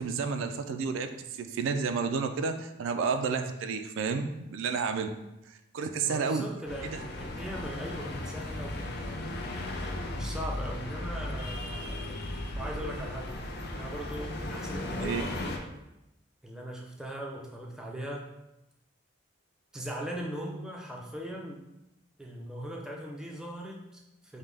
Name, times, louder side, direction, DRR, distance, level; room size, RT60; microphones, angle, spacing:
voice 1, 0.0-5.1 5.5-6.5 6.8-7.0 15.0-15.2, right 5 dB, 75° right, 7 dB, 0.3 m, -31 dB
voice 2, 6.0-9.5 10.1-12.2 12.6-15.6 16.4-18.3 19.7-21.7 22.2-24.4, right 1 dB, 5° right, -2 dB, 0.4 m, -40 dB
sound 1, 6.7-15.6, left 1 dB, 55° left, 0.5 m, -36 dB
5.1 x 2.1 x 3.3 m, 0.92 s
head